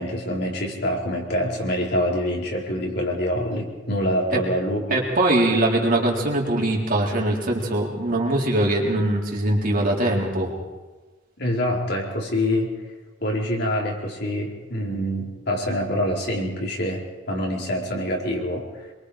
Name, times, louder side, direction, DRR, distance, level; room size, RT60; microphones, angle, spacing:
voice 1, 0.0-5.0 11.4-12.7 13.2-18.9, equal, 60° left, -1 dB, 4.1 m, -26 dB
voice 2, 4.9-10.5, right 1 dB, 45° right, -1 dB, 3.9 m, -22 dB
25.5 x 23.0 x 5.0 m, 1.2 s
head